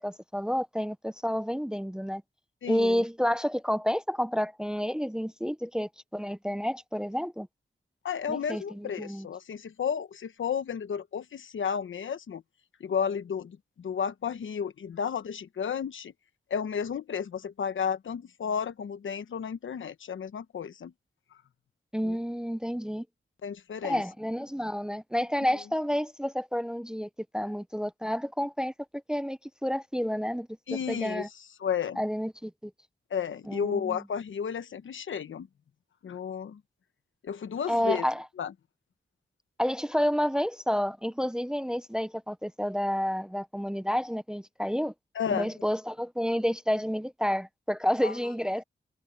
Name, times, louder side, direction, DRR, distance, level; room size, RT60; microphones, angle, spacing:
voice 1, 0.0-2.2 2.7-7.5 8.3-9.3 21.9-23.0 23.8-31.3 32.0-32.7 33.5-34.0 37.7-38.2 39.6-44.9 45.3-48.6, equal, 5° right, 0.5 m, -30 dB
voice 2, 2.6-3.0 8.0-12.4 12.8-16.1 16.5-20.9 22.0-22.2 23.4-24.0 30.7-31.3 31.6-32.0 33.1-35.5 36.0-36.6 37.2-38.1 38.4-38.5 45.1-45.5 48.0-48.1, left 7 dB, 90° left, 1.1 m, -32 dB
wide cardioid pair, 160°, 20 cm